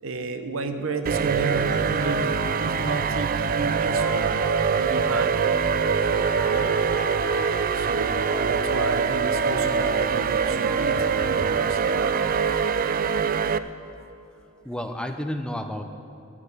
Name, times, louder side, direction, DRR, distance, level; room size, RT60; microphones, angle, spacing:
voice 1, 0.0-5.4 6.4-6.7 7.7-12.2, right 3 dB, 80° right, 8 dB, 0.8 m, -32 dB
sound 1, 1.1-13.6, right 6 dB, 45° right, 0.3 m, -24 dB
sound 2, 1.7-14.1, left 3 dB, 65° left, 3.1 m, -36 dB
sound 3, 5.2-10.0, left 1 dB, 35° left, 1.2 m, -43 dB
voice 2, 14.6-15.8, left 1 dB, 5° left, 6 dB, 0.5 m, -32 dB
11.0 x 7.5 x 8.0 m, 2.6 s
head